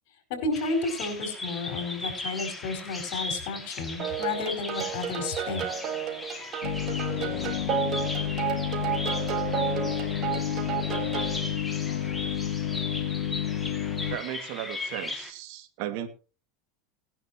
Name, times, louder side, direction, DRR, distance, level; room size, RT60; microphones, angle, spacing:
voice 1, 0.3-5.6, left 3 dB, 65° left, 5 dB, 5.1 m, -32 dB
Bird vocalization bird call bird song, 0.5-15.3, left 2 dB, 10° left, 2.3 m, -38 dB
sound 1, 4.0-11.4, right 9 dB, 45° right, 3.5 m, -32 dB
sound 2, 6.6-14.2, left 10 dB, 85° left, 2.3 m, -30 dB
voice 2, 14.1-16.1, right 12 dB, 60° right, 7 dB, 2.1 m, -35 dB
19.0 x 11.0 x 3.0 m, 0.35 s
supercardioid pair, 130°, 0 cm